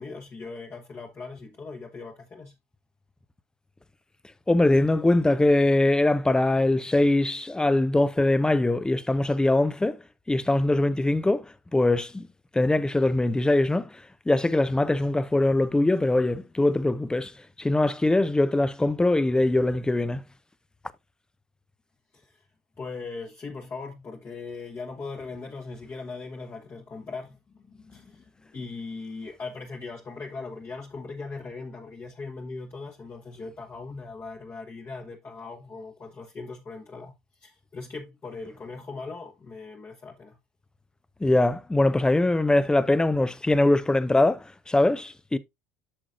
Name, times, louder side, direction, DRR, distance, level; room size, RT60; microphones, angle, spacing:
voice 1, 0.0-2.5 22.1-22.4 22.8-37.1 37.4-40.4, left 4 dB, 30° left, 1.2 m, -39 dB
voice 2, 4.5-10.0 10.3-12.3 12.5-17.3 17.6-20.2 41.2-45.4, left 2 dB, 10° left, 0.6 m, -22 dB
8.8 x 6.2 x 2.5 m
hypercardioid pair, 70°, 8 cm